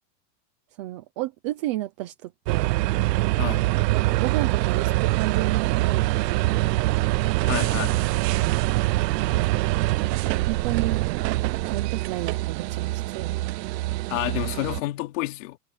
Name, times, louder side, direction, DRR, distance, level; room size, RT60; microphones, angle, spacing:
voice 1, 0.8-2.8 3.9-6.8 9.2-9.5 10.4-11.1 11.7-13.5, right 16 dB, 20° right, 0.4 m, -32 dB
sound 1, 2.5-14.8, right 18 dB, 80° right, 0.7 m, -24 dB
voice 2, 3.4-3.7 7.4-8.0 14.1-15.6, left 19 dB, 50° left, 4.2 m, -29 dB
supercardioid pair, 175°, 48 cm